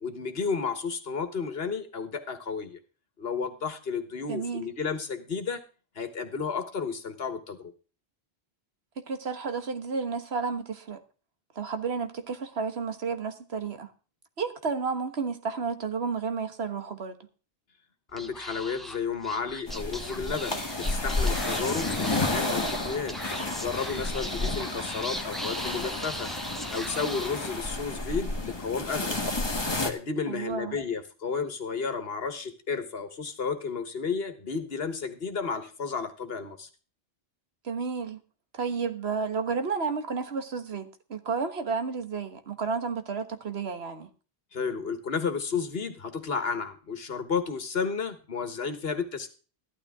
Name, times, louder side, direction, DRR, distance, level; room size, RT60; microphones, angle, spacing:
voice 1, 0.0-2.8 3.2-5.6 5.9-7.7 18.1-23.2 23.6-26.3 26.7-29.2 29.8-36.7 44.5-49.3, left 5 dB, 70° left, 9 dB, 1.6 m, -32 dB
voice 2, 4.3-4.6 9.1-11.0 11.5-13.9 14.4-17.2 30.3-30.8 37.6-38.2 38.5-44.1, right 5 dB, 85° right, 8 dB, 1.6 m, -31 dB
Speech / Whispering, 18.1-27.9, equal, ahead, 1.0 m, -39 dB
sound 1, 19.7-29.9, left 2 dB, 25° left, 1.4 m, -31 dB
14.0 x 12.0 x 3.6 m, 0.36 s
omnidirectional pair, 1.0 m